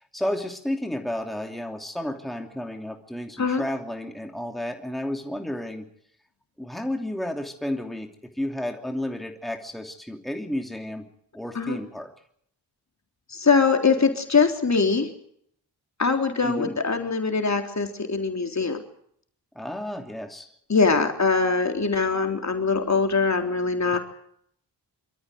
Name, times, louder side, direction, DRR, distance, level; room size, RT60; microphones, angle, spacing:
voice 1, 0.1-5.9 6.6-8.1 8.4-11.0 11.3-12.1 16.4-16.8 19.5-20.5 23.9-24.0, left 1 dB, ahead, 4 dB, 2.9 m, -32 dB
voice 2, 13.3-15.1 16.0-18.8 20.7-24.0, left 4 dB, 40° left, 4 dB, 3.6 m, -22 dB
25.5 x 13.5 x 9.3 m, 0.68 s
cardioid pair, 55°, 42 cm